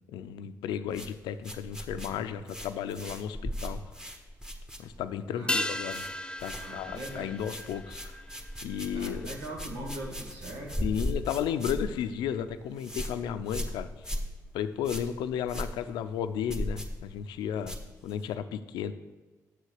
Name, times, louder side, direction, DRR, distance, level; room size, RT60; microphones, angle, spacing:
voice 1, 0.1-3.8 4.8-6.0 6.4-8.2 8.6-9.3 10.8-13.9 14.5-18.9, left 9 dB, 85° left, 11 dB, 0.5 m, -34 dB
sound 1, 0.9-5.3 5.5-6.1 6.4-18.4, equal, 10° right, 1.5 m, -38 dB
sound 2, 5.5-10.2 10.5-10.6, left 1 dB, 15° left, 0.4 m, -37 dB
voice 2, 6.6-7.3 8.9-10.9, right 1 dB, 85° right, 0 dB, 2.1 m, -41 dB
7.0 x 6.7 x 6.5 m, 1.2 s
supercardioid pair, 60°, 7 cm